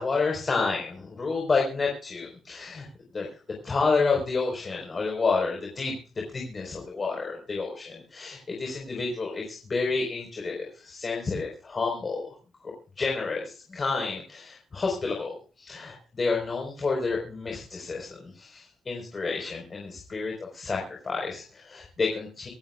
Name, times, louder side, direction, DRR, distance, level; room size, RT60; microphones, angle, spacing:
voice 1, 0.0-2.9 3.1-3.3 3.6-6.0 6.3-12.3 12.6-22.5, left 4 dB, 30° left, 0 dB, 4.4 m, -30 dB
25.5 x 13.0 x 2.4 m, 0.38 s
cardioid pair, 110°, 0 cm